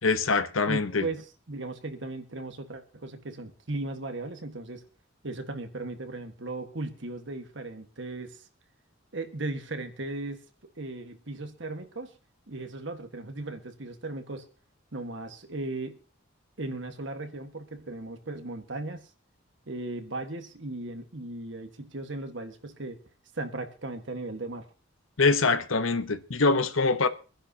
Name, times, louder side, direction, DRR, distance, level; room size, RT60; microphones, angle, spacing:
voice 1, 0.0-1.1 25.2-27.1, left 4 dB, 85° left, 1.0 m, -24 dB
voice 2, 0.7-4.8 5.2-8.5 9.1-10.4 10.8-12.1 12.5-14.5 14.9-16.0 16.6-19.1 19.7-23.0 23.3-24.6, right 2 dB, 65° right, 1.6 m, -37 dB
25.0 x 10.5 x 2.9 m
head